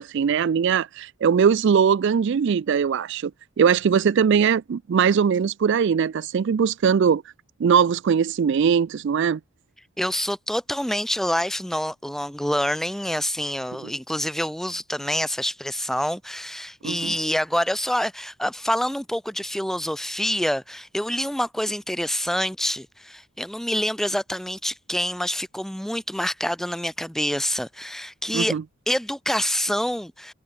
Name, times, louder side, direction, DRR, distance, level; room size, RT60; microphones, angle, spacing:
voice 1, 0.0-3.3 3.6-7.2 7.6-9.4 16.8-17.1 28.3-28.6, right 7 dB, 55° right, 0.3 m, -20 dB
voice 2, 10.0-28.5 28.9-30.3, equal, ahead, 0.7 m, -27 dB
head